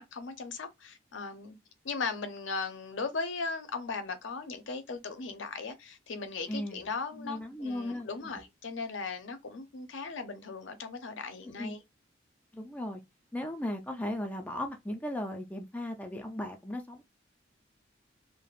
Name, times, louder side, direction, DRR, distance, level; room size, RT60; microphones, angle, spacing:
voice 1, 0.0-1.5 1.8-11.8, left 4 dB, 80° left, 0.5 m, -38 dB
voice 2, 6.5-6.9 7.2-8.1 11.6-11.7 12.5-13.0 13.3-17.0, left 1 dB, 10° left, 0.3 m, -36 dB
3.2 x 2.0 x 2.4 m
head